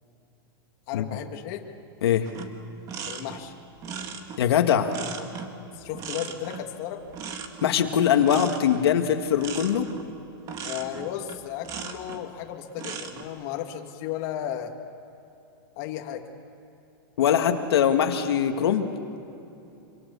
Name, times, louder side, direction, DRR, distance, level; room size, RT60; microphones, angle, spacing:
voice 1, 0.9-1.6 3.1-3.5 5.7-7.1 10.6-14.8 15.8-16.3, left 11 dB, 40° left, 3 dB, 1.9 m, -34 dB
sound 1, 2.2-12.3 12.7-13.2, right 6 dB, 25° right, 1.7 m, -38 dB
voice 2, 4.4-4.9 7.6-9.9 17.2-18.9, left 9 dB, 85° left, 5 dB, 1.9 m, -22 dB
26.5 x 25.0 x 7.0 m, 2.8 s
supercardioid pair, 160°, 13 cm